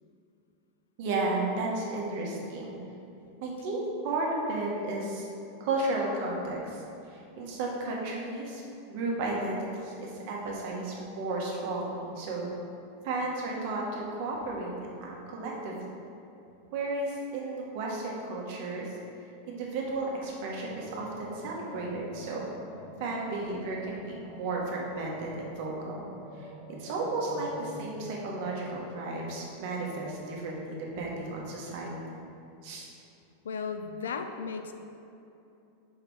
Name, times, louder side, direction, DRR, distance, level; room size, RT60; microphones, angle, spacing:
voice 1, 1.0-2.8 3.4-5.3 5.6-6.8 7.1-8.6 8.9-12.5 13.0-15.9 16.7-18.9 19.5-22.5 23.0-26.1 26.4-32.2 32.6-32.9, right 2 dB, 60° right, -2 dB, 1.5 m, -33 dB
sound 1, 20.6-30.7, equal, 40° left, 1.3 m, -47 dB
voice 2, 33.4-34.7, left 5 dB, 85° left, 7 dB, 0.5 m, -35 dB
5.2 x 4.8 x 4.8 m, 2.8 s
hypercardioid pair, 105°, 0 cm